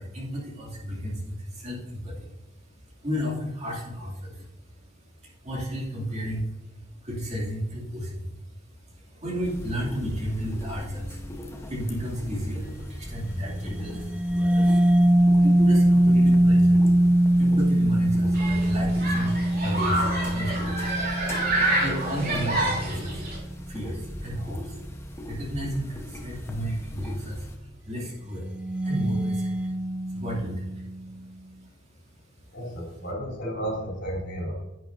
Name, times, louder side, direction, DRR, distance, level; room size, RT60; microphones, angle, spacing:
voice 1, 0.0-32.6, equal, 35° right, -3 dB, 2.5 m, -34 dB
sound 1, 9.4-27.6, equal, 15° left, 0.9 m, -39 dB
sound 2, 13.6-22.9 28.5-31.0, right 1 dB, 5° right, 0.4 m, -22 dB
Human group actions, 18.3-23.4, right 1 dB, 50° right, 3.2 m, -28 dB
voice 2, 32.5-34.5, right 1 dB, 60° left, -2 dB, 3.5 m, -32 dB
10.5 x 9.1 x 2.6 m, 1.0 s
head